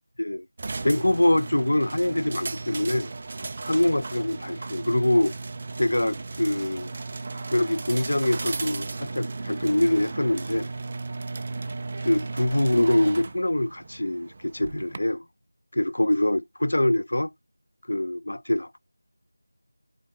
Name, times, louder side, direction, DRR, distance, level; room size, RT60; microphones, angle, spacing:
sound 1, 0.6-15.0, right 3 dB, 20° right, 0.4 m, -35 dB
voice 1, 0.8-3.1 3.7-5.3 5.8-6.9 7.5-10.7 12.0-15.2 15.7-17.3 17.9-18.8, left 1 dB, 65° left, 0.5 m, -24 dB
6.0 x 4.1 x 3.8 m
figure-of-eight pair, 180°, 0 cm